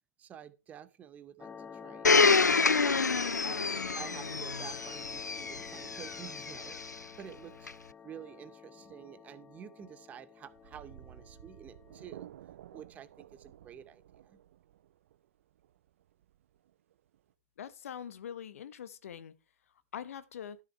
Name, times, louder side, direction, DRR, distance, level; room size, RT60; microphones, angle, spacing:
voice 1, 0.2-3.0 3.3-7.7 8.0-12.3 12.7-14.4, right 9 dB, 15° right, 0.8 m, -50 dB
sound 1, 1.4-12.2, left 7 dB, 10° left, 0.5 m, -49 dB
Domestic sounds home sounds, 2.0-6.9 7.7-7.8, left 4 dB, 85° left, 0.4 m, -27 dB
sound 2, 10.5-17.3, right 12 dB, 50° right, 1.0 m, -54 dB
voice 2, 17.6-19.3 19.9-20.6, left 8 dB, 55° left, 0.8 m, -43 dB
12.5 x 6.2 x 4.6 m
figure-of-eight pair, 120°, 9 cm